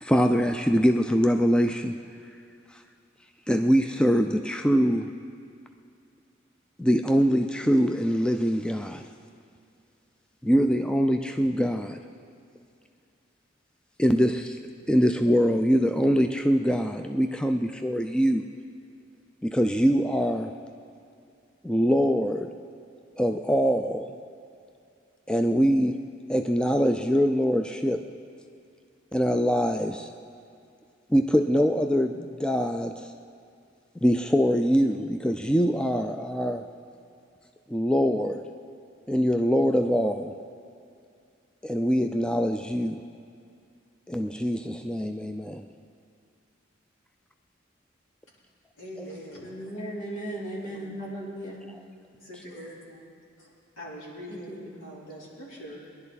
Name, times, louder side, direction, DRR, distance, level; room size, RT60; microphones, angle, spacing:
voice 1, 0.0-2.0 3.5-5.1 6.8-9.0 10.4-12.0 14.0-14.6 14.9-18.4 19.4-20.5 21.6-22.5 23.2-24.2 25.3-26.0 26.3-28.0 29.1-30.1 31.1-33.1 34.0-36.7 37.7-38.4 39.1-40.4 41.6-43.0 44.1-45.7, equal, 5° left, 6 dB, 0.4 m, -23 dB
voice 2, 48.8-49.5 50.7-51.1 52.2-53.0 53.4-53.5 53.8-56.0, equal, 90° left, -6 dB, 3.9 m, -43 dB
voice 3, 49.4-51.6 54.3-55.0, right 1 dB, 40° left, -5 dB, 3.0 m, -37 dB
23.0 x 11.0 x 4.1 m, 2.4 s
head